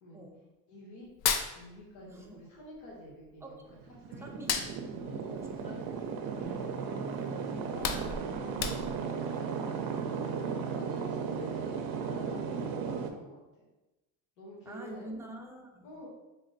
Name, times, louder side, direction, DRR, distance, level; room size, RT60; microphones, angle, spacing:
voice 1, 0.7-1.1 1.5-3.6 3.9-4.3 5.0-9.2 9.8-10.4 10.7-13.7 14.4-15.1 15.8-16.1, left 1 dB, 85° left, -3 dB, 1.4 m, -49 dB
Hands, 1.0-2.3 2.6-3.9 4.3-6.6 7.0-7.2 7.5-9.2, left 7 dB, 50° left, 0.5 m, -34 dB
voice 2, 2.1-2.4 3.4-3.5 4.2-4.6 5.2-5.7 9.8-10.7 14.7-16.1, right 1 dB, 5° right, 0 dB, 0.5 m, -47 dB
sound 1, 3.7-13.1, right 6 dB, 55° right, 0.5 m, -35 dB
3.3 x 2.1 x 3.9 m, 1.1 s
supercardioid pair, 95°, 41 cm